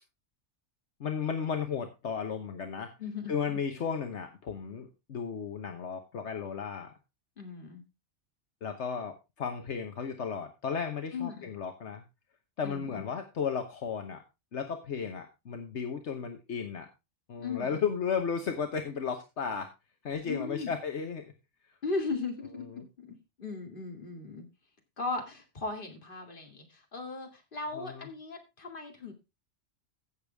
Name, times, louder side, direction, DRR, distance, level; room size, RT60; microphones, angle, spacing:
voice 1, 1.0-2.9 3.3-6.9 8.6-12.0 12.6-14.2 14.5-16.9 17.3-19.7 20.0-21.3 22.7-22.9 27.7-28.1, left 6 dB, 75° left, 5 dB, 1.4 m, -34 dB
voice 2, 3.0-3.6 7.4-7.8 11.1-11.5 12.6-13.1 17.4-17.9 20.2-20.7 21.8-24.5 25.0-29.1, left 3 dB, 45° left, 3 dB, 2.4 m, -37 dB
15.5 x 6.8 x 3.4 m, 0.26 s
omnidirectional pair, 1.2 m